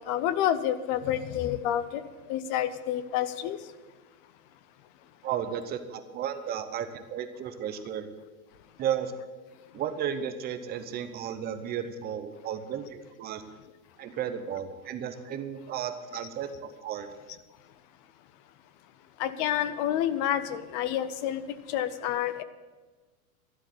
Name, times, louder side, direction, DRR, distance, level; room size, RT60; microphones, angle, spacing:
voice 1, 0.0-2.0 2.3-3.6 19.2-21.4 21.7-22.4, left 11 dB, 35° left, 14 dB, 0.5 m, -28 dB
voice 2, 5.2-8.1 8.8-9.1 9.7-13.4 14.0-17.1, right 9 dB, 20° right, 8 dB, 0.8 m, -34 dB
12.5 x 8.0 x 8.0 m, 1.3 s
supercardioid pair, 155°, 43 cm